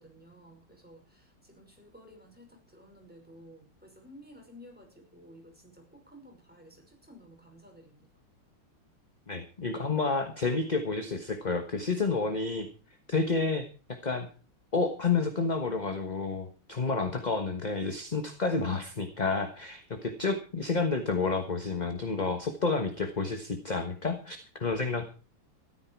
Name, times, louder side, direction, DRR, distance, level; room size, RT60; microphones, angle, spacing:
voice 1, 0.0-8.1, equal, 5° right, 1 dB, 5.6 m, -54 dB
voice 2, 9.3-12.7 13.1-14.3 14.7-25.1, left 4 dB, 25° left, 7 dB, 1.2 m, -30 dB
14.5 x 13.0 x 4.7 m, 0.37 s
omnidirectional pair, 2.2 m